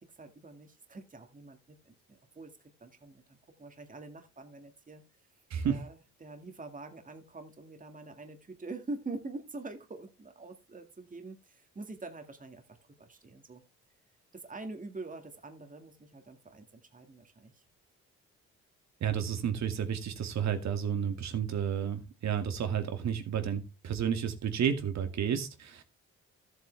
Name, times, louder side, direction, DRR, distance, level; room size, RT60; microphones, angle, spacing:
voice 1, 0.0-5.0 5.6-12.6 13.0-13.6 14.3-17.6, right 3 dB, 25° right, 2.1 m, -45 dB
voice 2, 19.0-25.8, right 8 dB, 65° right, 2.2 m, -31 dB
13.5 x 8.0 x 3.4 m
supercardioid pair, 60°, 30 cm